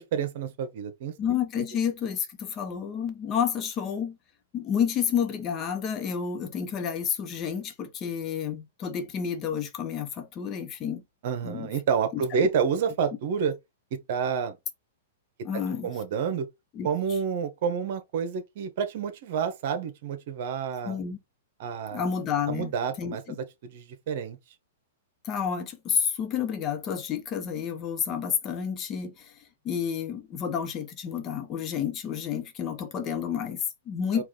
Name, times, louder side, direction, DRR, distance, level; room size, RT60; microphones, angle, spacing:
voice 1, 0.0-1.1 11.2-13.5 14.1-14.6 15.8-16.5 16.8-21.0 21.6-22.1 22.5-23.4 23.7-24.4 34.1-34.2, right 6 dB, 60° right, 1.1 m, -29 dB
voice 2, 1.2-4.2 4.5-11.0 11.4-11.7 12.1-12.5 15.4-15.9 16.7-16.9 20.8-21.2 21.9-22.7 23.0-23.4 25.2-29.4 29.6-34.2, left 8 dB, 30° left, 1.0 m, -30 dB
4.7 x 2.5 x 3.7 m
hypercardioid pair, 135°, 0 cm